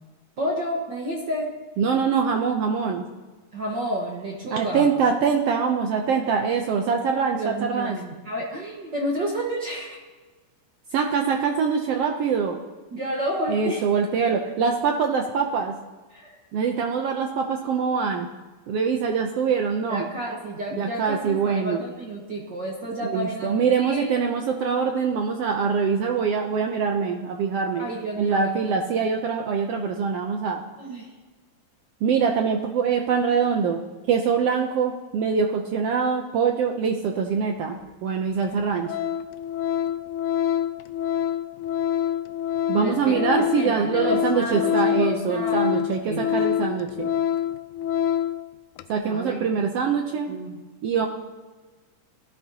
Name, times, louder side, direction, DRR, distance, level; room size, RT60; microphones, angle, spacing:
voice 1, 0.4-1.5 3.5-4.9 7.4-10.0 12.9-13.8 16.1-16.4 19.9-24.1 27.8-28.6 30.8-31.1 42.7-43.2 43.6-46.3 49.0-49.5 50.3-50.6, right 1 dB, 45° right, -2 dB, 1.7 m, -30 dB
voice 2, 1.8-3.0 4.5-8.0 10.9-12.6 13.5-15.8 16.5-18.3 18.7-20.1 20.8-21.8 23.0-27.9 28.2-30.6 32.0-33.8 34.1-38.9 42.7-47.1 48.9-50.3 50.8-51.1, right 6 dB, 70° right, 3 dB, 1.5 m, -24 dB
Organ, 37.8-37.9 38.4-38.6 38.9-48.4 48.8-48.9, left 10 dB, 85° left, 1.9 m, -26 dB
17.5 x 12.5 x 2.8 m, 1.3 s
omnidirectional pair, 3.4 m